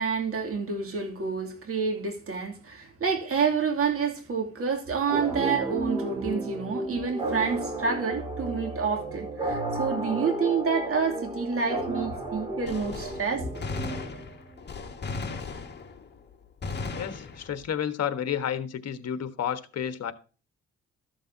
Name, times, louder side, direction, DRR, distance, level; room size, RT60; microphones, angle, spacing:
voice 1, 0.0-13.5, right 5 dB, 50° right, 2.8 m, -28 dB
sound 1, 5.1-14.5, right 1 dB, 15° right, 4.2 m, -33 dB
Gunshot gunfire, 12.6-16.2 16.6-17.7, left 4 dB, 35° left, 1.9 m, -36 dB
voice 2, 16.9-20.1, left 9 dB, 55° left, 1.4 m, -31 dB
13.5 x 7.4 x 2.8 m
cardioid pair, 90°, 30 cm